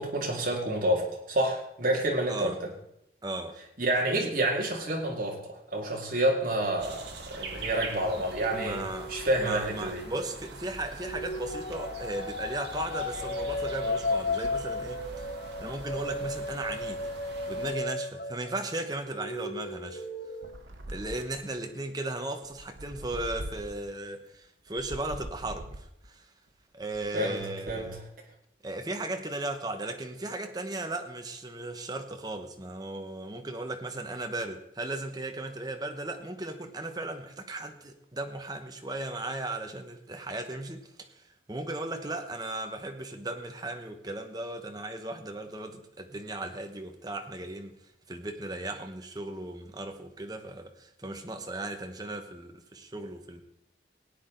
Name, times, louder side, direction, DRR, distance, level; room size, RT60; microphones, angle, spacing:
voice 1, 0.0-2.6 3.8-8.8 9.1-10.1 27.1-28.0, right 1 dB, 45° right, -1 dB, 2.3 m, -29 dB
voice 2, 2.3-2.6 3.2-3.6 8.2-8.3 8.5-15.3 15.6-17.1 17.5-20.0 20.9-26.3 26.7-28.0 28.6-41.2 41.5-47.8 48.1-53.4, right 2 dB, 20° right, 5 dB, 1.0 m, -36 dB
sound 1, 6.8-17.7, right 2 dB, 65° right, 1.9 m, -43 dB
sound 2, 8.3-10.4 11.0-18.7 19.0-20.5, left 2 dB, 50° left, 1.1 m, -35 dB
sound 3, 20.4-21.6 22.4-23.9 24.7-26.1 26.8-28.0, right 1 dB, 85° right, 1.1 m, -42 dB
17.5 x 9.2 x 3.9 m, 0.80 s
head